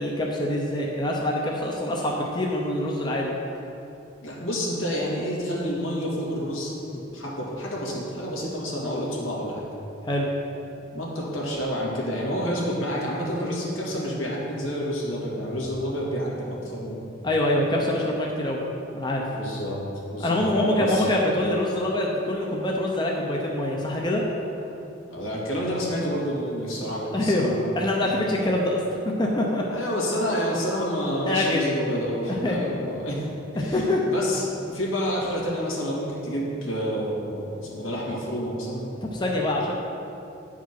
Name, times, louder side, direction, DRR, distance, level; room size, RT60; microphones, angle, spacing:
voice 1, 0.0-3.4 10.0-10.3 17.2-18.6 18.9-19.2 20.2-24.2 27.1-27.5 27.8-28.8 29.2-29.6 31.3-31.7 32.3-32.6 33.6-34.0 39.0-39.7, left 1 dB, 20° left, -2 dB, 0.7 m, -25 dB
voice 2, 4.2-9.7 10.9-17.0 19.3-19.8 20.1-21.1 25.1-27.8 29.7-33.2 33.5-38.9, equal, 85° left, -4 dB, 2.1 m, -29 dB
9.3 x 4.9 x 5.9 m, 2.8 s
head